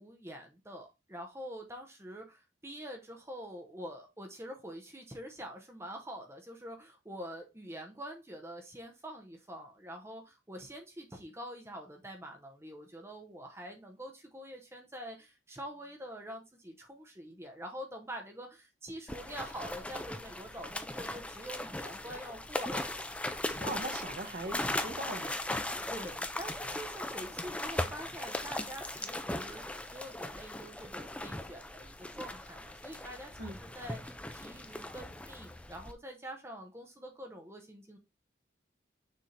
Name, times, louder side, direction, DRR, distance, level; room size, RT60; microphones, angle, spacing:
voice 1, 0.0-22.9 23.5-23.7 25.9-29.6 29.9-33.3 33.6-38.0, equal, 15° right, 0.9 m, -45 dB
sound 1, 19.1-35.9, left 1 dB, 5° left, 0.5 m, -38 dB
voice 2, 23.5-25.4 33.4-33.6, right 2 dB, 55° right, 1.5 m, -40 dB
6.5 x 3.5 x 4.3 m
head